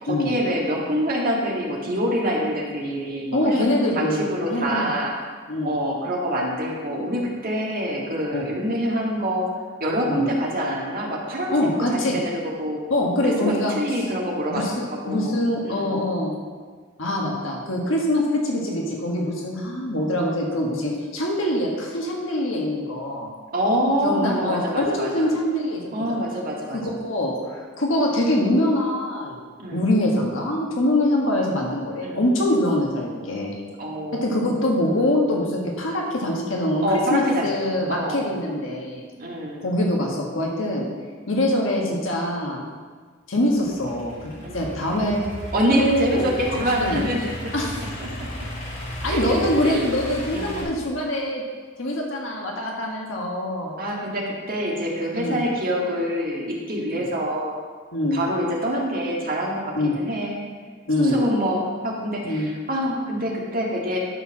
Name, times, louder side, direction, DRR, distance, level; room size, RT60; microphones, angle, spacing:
voice 1, 0.0-3.7 3.9-5.1 5.6-9.5 9.8-11.8 12.1-12.8 13.2-14.6 14.9-15.4 15.6-15.9 23.5-25.3 25.9-27.0 29.6-29.8 32.0-32.2 33.8-34.6 36.8-37.5 37.9-38.4 39.2-39.6 44.4-44.6 45.5-48.1 49.0-49.9 50.3-50.7 53.8-57.6 58.1-60.5 61.0-64.0, equal, 45° right, -2 dB, 1.9 m, -26 dB
voice 2, 3.3-4.9 5.5-5.7 8.3-8.5 10.1-10.2 11.5-12.2 12.9-14.0 14.5-16.3 17.0-23.3 24.0-26.2 26.7-29.4 29.7-33.5 34.1-36.8 37.1-39.0 39.6-40.9 41.3-42.7 43.3-44.2 44.5-45.2 45.8-47.1 47.5-47.9 49.0-51.4 51.8-53.8 55.1-55.4 56.9-57.0 57.9-58.2 59.7-59.9 60.9-61.2 62.2-62.5, left 1 dB, 70° left, -1 dB, 1.5 m, -24 dB
Idling / Accelerating revving vroom, 43.5-50.6, equal, 35° left, 2.3 m, -34 dB
11.5 x 4.5 x 6.1 m, 1.6 s
head